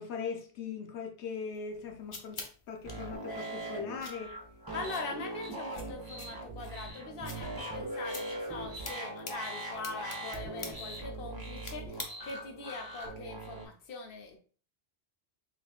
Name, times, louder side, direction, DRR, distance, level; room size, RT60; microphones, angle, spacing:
voice 1, 0.0-4.4, left 6 dB, 90° left, 0.9 m, -40 dB
sound 1, 1.5-12.6, left 3 dB, 40° left, 0.5 m, -49 dB
sound 2, 2.8-13.6, right 2 dB, 20° right, 1.0 m, -40 dB
voice 2, 4.7-14.4, left 3 dB, 60° left, 0.9 m, -42 dB
3.8 x 3.4 x 2.3 m
omnidirectional pair, 1.1 m